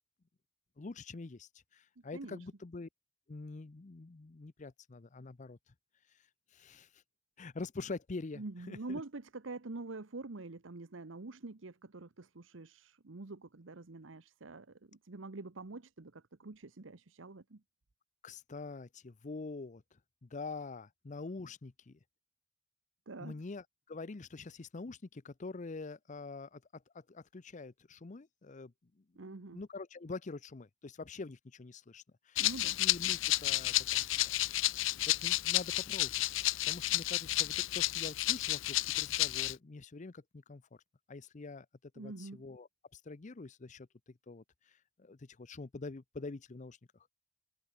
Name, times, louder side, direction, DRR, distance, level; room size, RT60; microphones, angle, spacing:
voice 1, 0.8-2.9 3.3-5.7 6.1-7.0 7.4-9.0 18.2-19.8 20.2-22.0 23.2-28.7 29.1-32.4 32.8-34.4 35.1-40.6 41.1-41.7 41.9-43.9 44.3-46.8, left 3 dB, 40° left, 0.6 m, -45 dB
voice 2, 2.1-2.5 8.3-17.6 23.1-23.3 29.2-29.6 32.4-32.8 42.0-42.4, right 3 dB, 90° right, 1.1 m, -46 dB
Rattle (instrument), 32.4-39.5, left 16 dB, 80° left, 0.5 m, -31 dB
head